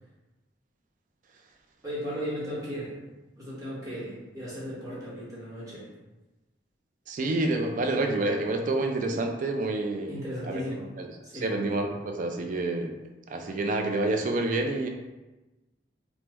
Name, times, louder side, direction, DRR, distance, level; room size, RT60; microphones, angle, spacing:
voice 1, 1.8-3.0 3.3-5.9 10.1-10.9 11.2-11.6, equal, 20° right, -8 dB, 1.0 m, -36 dB
voice 2, 7.1-10.1 10.5-10.6 11.0-11.1 11.4-12.9 13.3-14.9, right 2 dB, 45° right, 4 dB, 0.3 m, -28 dB
2.9 x 2.0 x 3.4 m, 1.1 s
head